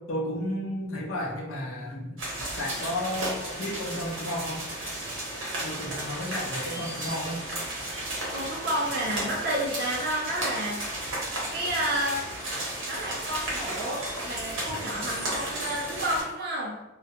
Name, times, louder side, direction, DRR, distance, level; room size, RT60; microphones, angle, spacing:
voice 1, 0.1-2.2 2.6-4.7 5.6-7.4, left 1 dB, 85° left, 0 dB, 0.6 m, -33 dB
sound 1, 2.2-16.2, right 1 dB, 80° right, 0.8 m, -34 dB
voice 2, 8.0-10.8 11.5-12.3 12.9-16.8, right 1 dB, 50° right, -4 dB, 0.4 m, -30 dB
2.3 x 2.1 x 2.7 m, 0.99 s
head